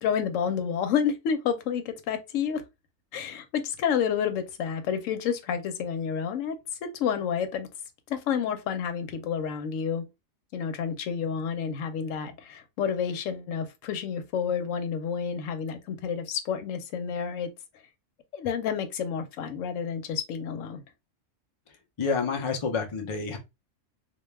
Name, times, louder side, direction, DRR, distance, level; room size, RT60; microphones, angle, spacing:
voice 1, 0.0-2.6 3.1-7.7 8.1-10.0 10.5-17.5 18.3-20.8, left 7 dB, 90° left, 1.0 m, -29 dB
voice 2, 22.0-23.4, left 5 dB, 50° left, 0.3 m, -28 dB
2.3 x 2.2 x 3.1 m
omnidirectional pair, 1.3 m